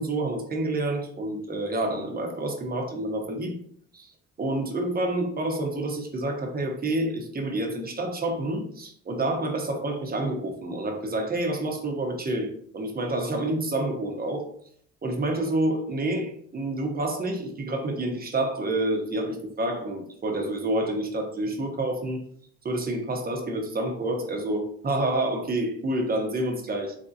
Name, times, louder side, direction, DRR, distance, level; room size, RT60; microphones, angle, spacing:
voice 1, 0.0-3.5 3.9-4.1 4.4-14.5 15.0-22.2 22.6-27.0, right 1 dB, 30° right, 2 dB, 1.0 m, -28 dB
3.8 x 3.4 x 2.7 m, 0.63 s
cardioid pair, 90°, 30 cm